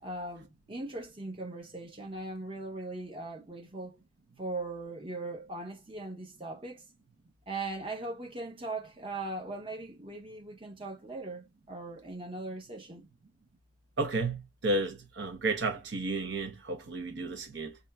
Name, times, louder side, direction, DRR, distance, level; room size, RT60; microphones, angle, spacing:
voice 1, 0.0-4.0 4.4-6.8 7.5-13.1, right 2 dB, 30° right, 0.8 m, -39 dB
voice 2, 14.0-17.8, right 2 dB, 70° right, 0.7 m, -32 dB
5.1 x 2.8 x 2.2 m
head